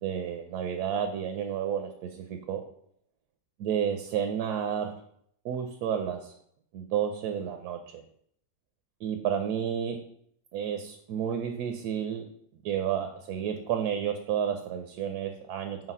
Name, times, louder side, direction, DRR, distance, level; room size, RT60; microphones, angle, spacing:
voice 1, 0.0-2.6 3.6-5.0 5.4-6.3 6.7-8.0 9.0-10.0 10.5-12.2 12.6-15.8, right 8 dB, 80° right, 6 dB, 1.1 m, -31 dB
4.5 x 4.0 x 5.4 m, 0.67 s
omnidirectional pair, 1.7 m